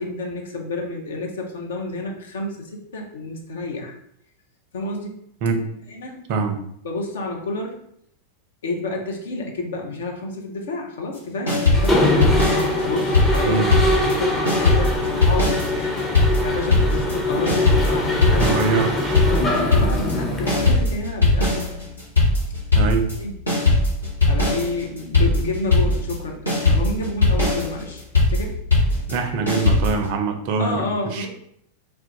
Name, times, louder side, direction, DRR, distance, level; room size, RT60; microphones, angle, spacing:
voice 1, 0.0-4.0 4.7-5.2 5.9-6.2 6.8-7.8 8.6-12.3 12.8-18.5 19.6-21.7 23.2-23.4 24.3-28.0 28.3-28.6 29.8-30.1 30.6-31.3, left 2 dB, 60° left, 1 dB, 0.6 m, -30 dB
sound 1, 11.5-14.2 14.5-30.1, left 2 dB, 80° left, 1.0 m, -20 dB
Mechanisms, 11.7-20.7, left 2 dB, 15° left, 0.6 m, -23 dB
voice 2, 18.4-19.3 22.7-23.1 29.1-30.8 31.1-31.3, right 5 dB, 45° right, 5 dB, 0.4 m, -23 dB
2.3 x 2.2 x 3.8 m, 0.71 s
figure-of-eight pair, 90°, 0 cm